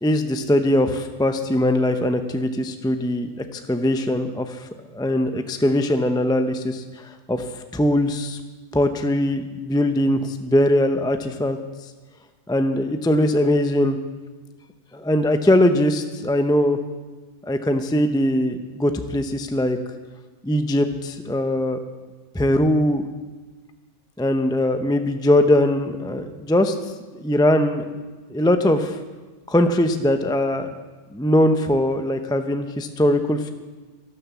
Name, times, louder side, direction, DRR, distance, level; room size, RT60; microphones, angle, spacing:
voice 1, 0.0-7.4 7.7-8.4 8.7-11.6 12.5-14.0 14.9-16.8 17.5-19.8 20.4-21.8 22.3-23.0 24.2-26.7 27.1-27.9 28.3-29.0 29.5-30.7 31.1-33.5, left 1 dB, 5° left, 7 dB, 0.4 m, -21 dB
12.0 x 12.0 x 6.9 m, 1.3 s
omnidirectional pair, 1.3 m